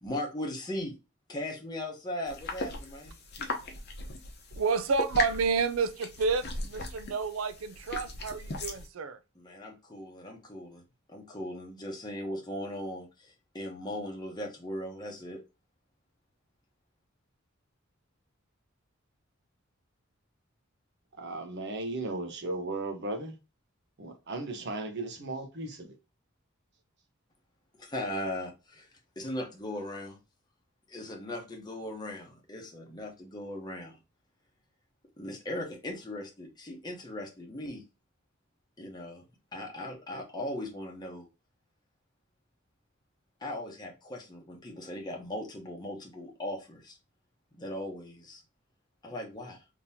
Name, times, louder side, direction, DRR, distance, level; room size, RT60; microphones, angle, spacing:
voice 1, 0.0-0.9 1.3-3.2 9.3-10.8 11.1-15.4 27.8-30.2 30.9-34.0 35.2-37.8 38.8-39.2 39.5-41.3 43.4-47.0 47.6-48.4 49.0-49.6, left 1 dB, 20° left, 0.9 m, -38 dB
sound 1, 2.3-8.9, left 2 dB, 50° left, 0.8 m, -38 dB
voice 2, 4.6-9.2, right 4 dB, 80° right, 0.5 m, -30 dB
voice 3, 21.2-23.4 24.0-25.9, right 2 dB, 55° right, 0.9 m, -36 dB
3.7 x 2.9 x 2.7 m
head